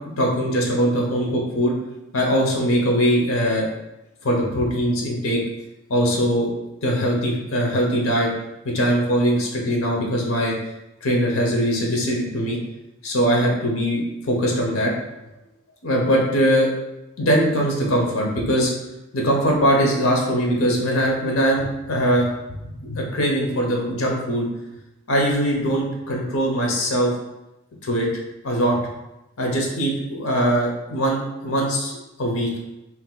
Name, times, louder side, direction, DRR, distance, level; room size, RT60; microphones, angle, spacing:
voice 1, 0.2-1.7 2.1-3.7 4.2-5.4 5.9-6.5 6.8-8.3 8.6-10.5 11.0-12.6 13.0-14.9 15.8-16.7 17.2-18.7 19.1-22.3 22.8-24.5 25.1-27.1 27.8-28.1 28.4-28.8 29.4-31.9 32.2-32.5, equal, 90° left, -1 dB, 0.8 m, -21 dB
2.8 x 2.5 x 3.8 m, 0.94 s
head